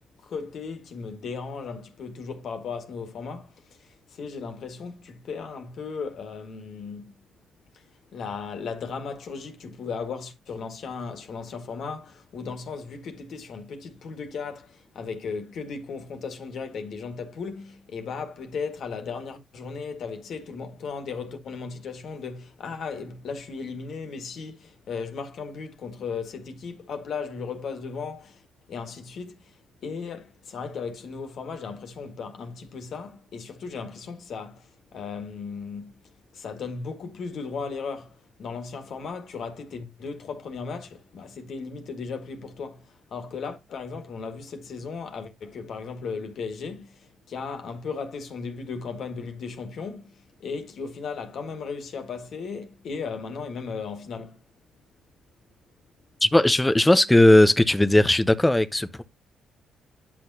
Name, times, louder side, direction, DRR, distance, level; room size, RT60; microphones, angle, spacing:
voice 1, 0.2-7.2 7.7-7.9 8.1-54.4, left 5 dB, 65° left, 1.7 m, -36 dB
voice 2, 56.2-59.0, left 1 dB, 10° left, 0.6 m, -18 dB
10.0 x 6.2 x 2.7 m
cardioid pair, 90°, 0 cm